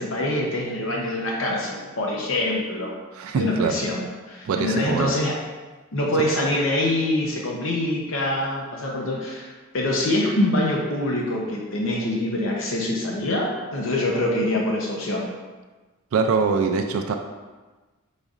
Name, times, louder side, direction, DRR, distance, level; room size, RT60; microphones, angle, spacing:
voice 1, 0.0-2.9 3.3-5.4 5.9-15.3, left 1 dB, 70° left, -1 dB, 0.7 m, -25 dB
voice 2, 3.1-3.8 4.4-5.1 16.1-17.1, right 5 dB, 80° right, 4 dB, 0.3 m, -23 dB
5.0 x 3.9 x 2.4 m, 1.3 s
head